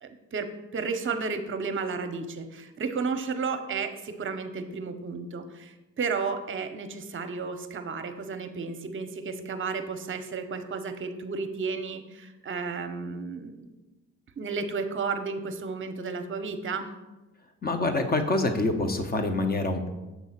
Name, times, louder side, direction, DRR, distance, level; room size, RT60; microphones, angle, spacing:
voice 1, 0.0-13.7 14.4-16.9, right 4 dB, 40° right, 8 dB, 0.8 m, -33 dB
voice 2, 17.6-19.9, left 2 dB, 30° left, 7 dB, 0.9 m, -26 dB
7.2 x 3.7 x 5.7 m, 1.1 s
cardioid pair, 90°, 30 cm